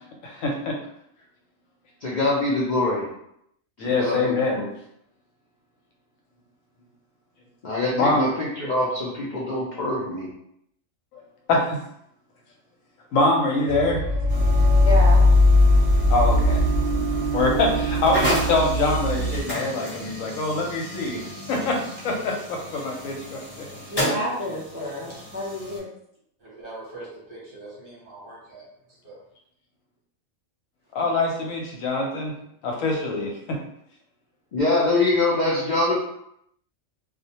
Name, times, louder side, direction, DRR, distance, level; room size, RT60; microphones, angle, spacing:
voice 1, 0.2-0.8 3.8-4.7 7.9-8.3 11.5-11.8 13.1-14.0 16.1-16.6 17.3-21.8 22.0-23.7 24.1-24.3 30.9-32.3 32.6-33.6, left 2 dB, 80° left, 0 dB, 1.0 m, -24 dB
voice 2, 2.0-3.1 3.8-4.7 7.6-10.3 34.5-35.9, left 2 dB, 60° left, -6 dB, 0.5 m, -24 dB
sound 1, 13.7-19.4, left 1 dB, 70° right, 0.9 m, -19 dB
sound 2, 14.3-25.8, equal, 25° left, 0.8 m, -33 dB
voice 3, 14.8-15.3 23.9-25.9, equal, 20° right, -8 dB, 0.3 m, -29 dB
voice 4, 26.4-28.6 29.0-29.2, right 2 dB, 50° right, -6 dB, 0.9 m, -42 dB
2.3 x 2.1 x 2.8 m, 0.74 s
omnidirectional pair, 1.4 m